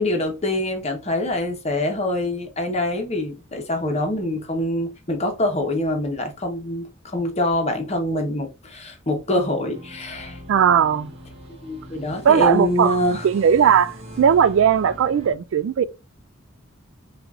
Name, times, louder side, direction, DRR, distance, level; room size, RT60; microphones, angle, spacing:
voice 1, 0.0-10.4 11.5-13.3, left 1 dB, 35° left, 1.0 m, -25 dB
sound 1, 9.7-15.3, equal, 30° right, 1.4 m, -41 dB
voice 2, 10.5-11.1 12.2-13.0 13.2-15.8, right 8 dB, 70° right, 0.3 m, -18 dB
5.8 x 2.6 x 2.4 m
head